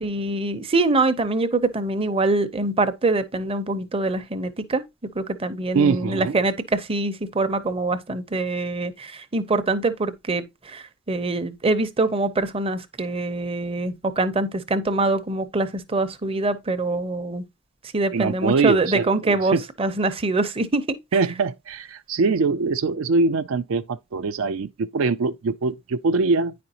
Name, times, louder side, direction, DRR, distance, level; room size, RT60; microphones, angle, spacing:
voice 1, 0.0-4.8 5.2-17.4 17.9-20.8, right 2 dB, 25° right, 0.7 m, -24 dB
voice 2, 5.7-6.4 18.1-19.6 21.1-26.5, right 4 dB, 65° right, 0.4 m, -23 dB
9.4 x 5.1 x 2.8 m
head